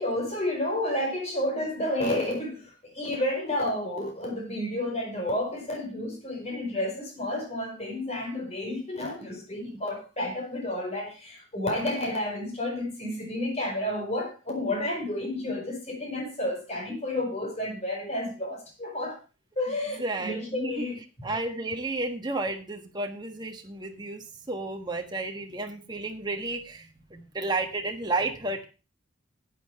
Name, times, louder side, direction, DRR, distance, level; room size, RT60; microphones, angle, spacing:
voice 1, 0.0-19.2 19.6-21.3, left 1 dB, 30° left, 4.5 m, -31 dB
voice 2, 20.0-20.8 21.2-28.7, right 2 dB, 20° right, 1.4 m, -32 dB
11.5 x 8.8 x 4.6 m
head